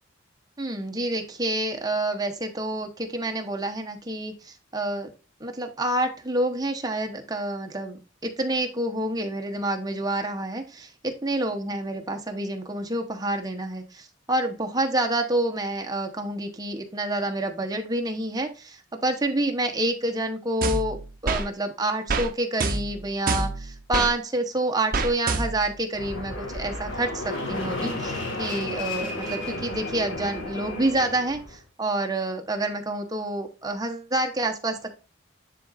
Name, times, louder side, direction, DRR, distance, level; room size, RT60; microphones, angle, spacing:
voice 1, 0.6-5.1 5.4-21.0 21.2-34.9, right 1 dB, 20° right, 4 dB, 0.9 m, -28 dB
sound 1, 20.6-21.5 22.1-22.3 22.6-24.1 24.9-25.7, right 3 dB, 45° right, 0.7 m, -26 dB
Fixed-wing aircraft airplane, 25.9-31.6, left 2 dB, 60° left, 1.6 m, -33 dB
10.5 x 3.8 x 2.5 m, 0.32 s
head